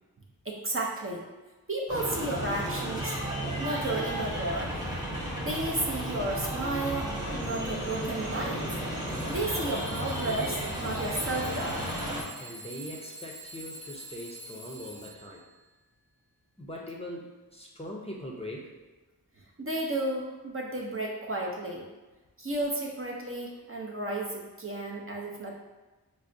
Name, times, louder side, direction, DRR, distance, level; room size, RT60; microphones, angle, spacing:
voice 1, 0.5-1.2 1.7-3.2 3.6-4.7 5.4-8.7 9.3-11.8 19.6-21.9 22.4-25.5, right 2 dB, 35° right, -2 dB, 0.6 m, -33 dB
sound 1, 1.9-12.2, right 1 dB, 10° right, 0.9 m, -33 dB
Alarm / Clock, 4.0-4.2 4.7-5.1 5.7-6.1 7.0-7.1 9.1-15.5, right 1 dB, 85° right, 0.8 m, -46 dB
voice 2, 12.4-15.5 16.6-18.7, equal, 15° left, -2 dB, 0.6 m, -41 dB
4.7 x 2.1 x 2.6 m, 1.2 s
wide cardioid pair, 45°, 39 cm